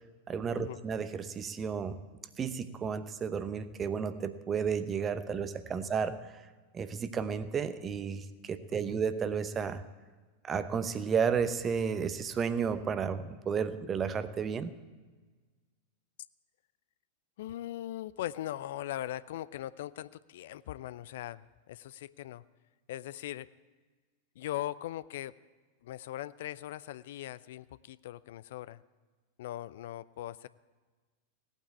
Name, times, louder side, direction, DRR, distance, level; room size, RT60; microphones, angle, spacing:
voice 1, 0.3-2.0 2.4-6.4 6.7-9.8 10.4-14.8, right 6 dB, 25° right, 13 dB, 0.8 m, -32 dB
voice 2, 17.4-22.4 22.9-23.5 24.4-25.4 25.8-28.8 29.4-30.5, left 13 dB, 55° left, 18 dB, 0.4 m, -40 dB
17.5 x 9.1 x 8.4 m, 1.4 s
figure-of-eight pair, 90°, 0 cm